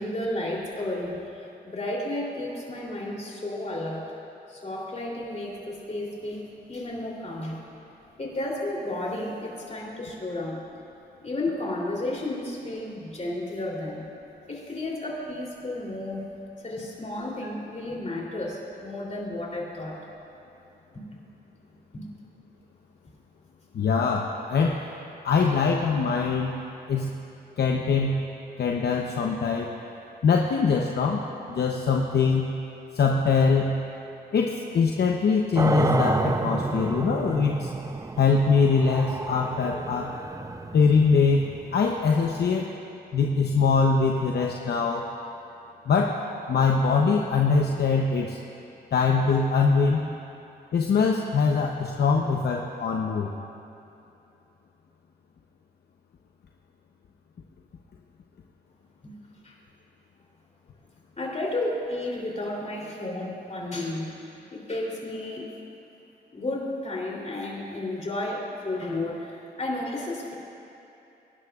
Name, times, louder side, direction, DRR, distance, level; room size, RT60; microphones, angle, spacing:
voice 1, 0.0-4.1 4.5-7.6 8.2-10.6 11.2-14.1 14.5-16.3 16.6-20.0 20.9-21.0 21.9-22.1 59.0-59.1 59.4-59.6 61.2-65.5 66.3-70.3, left 1 dB, 40° left, -3 dB, 3.3 m, -32 dB
voice 2, 23.7-24.8 25.2-26.6 26.9-27.2 27.6-28.2 28.6-29.7 30.2-32.5 32.9-33.8 34.3-37.7 38.2-40.1 40.7-42.7 43.1-45.1 45.9-46.2 46.5-48.4 48.9-50.1 50.7-53.3, left 5 dB, 65° left, 0 dB, 0.8 m, -23 dB
sound 1, 35.6-42.5, right 2 dB, 20° right, 0.6 m, -29 dB
22.5 x 11.5 x 2.5 m, 2.8 s
cardioid pair, 65°, 18 cm